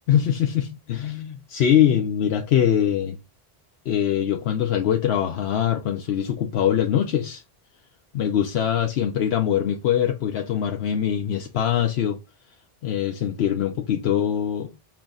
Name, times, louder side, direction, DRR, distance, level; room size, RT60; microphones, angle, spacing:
voice 1, 0.1-3.2 3.9-7.4 8.1-12.2 12.8-14.8, left 9 dB, 90° left, 0.9 m, -23 dB
5.9 x 2.4 x 3.8 m
omnidirectional pair, 1.0 m